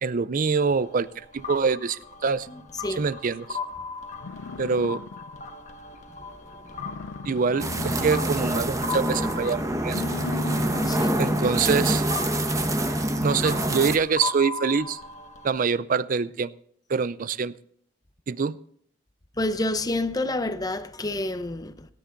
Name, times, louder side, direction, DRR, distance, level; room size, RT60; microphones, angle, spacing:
voice 1, 0.0-2.5 3.0-3.6 4.6-5.0 7.2-10.0 11.2-12.0 13.2-15.0 15.4-16.5 16.9-17.5 18.3-18.6, right 5 dB, 45° right, 0.4 m, -25 dB
sound 1, 0.7-15.5, left 5 dB, 40° left, 1.4 m, -38 dB
Bison bellowing - Yellowstone National Park, 3.7-3.8 4.2-5.6 5.9-6.0 6.4-6.5 6.7-8.7 9.0-9.3 9.8-11.8, left 4 dB, 75° left, 0.4 m, -38 dB
voice 2, 6.6-7.0 10.8-11.2 19.4-21.9, left 2 dB, 20° left, 0.7 m, -29 dB
sound 2, 7.6-14.0, right 1 dB, 15° right, 0.9 m, -26 dB
17.5 x 10.0 x 3.8 m
head